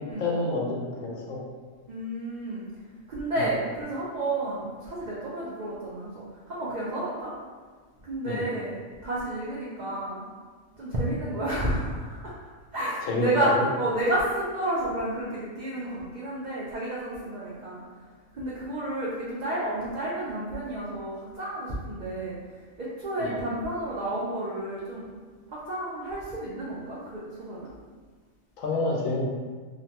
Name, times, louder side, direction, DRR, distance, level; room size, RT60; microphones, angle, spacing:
voice 1, 0.0-1.4 3.4-3.5 8.3-8.4 13.1-13.6 23.2-23.4 28.6-29.3, left 2 dB, 85° left, -2 dB, 1.0 m, -28 dB
voice 2, 1.9-2.7 3.1-7.3 8.0-10.2 10.7-12.3 12.7-13.5 13.8-17.8 18.3-25.1 25.5-27.7, right 1 dB, 70° right, -7 dB, 0.4 m, -31 dB
2.8 x 2.1 x 2.8 m, 1.5 s
omnidirectional pair, 1.3 m